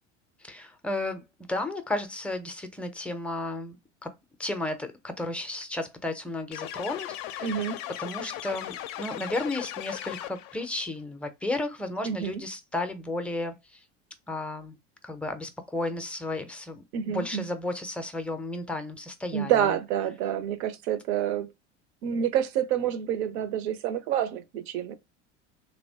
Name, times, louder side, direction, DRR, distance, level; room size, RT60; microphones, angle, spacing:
voice 1, 0.4-1.2 1.5-3.8 4.0-4.1 4.4-7.7 8.0-13.8 14.3-14.8 15.0-19.8, left 2 dB, 5° left, 0.4 m, -33 dB
sound 1, 6.5-10.7, left 12 dB, 60° left, 0.4 m, -37 dB
voice 2, 7.4-7.8 12.1-12.4 16.9-17.4 19.3-21.5 22.0-24.9, right 10 dB, 65° right, 0.6 m, -28 dB
2.9 x 2.1 x 2.7 m
hypercardioid pair, 85°, 36 cm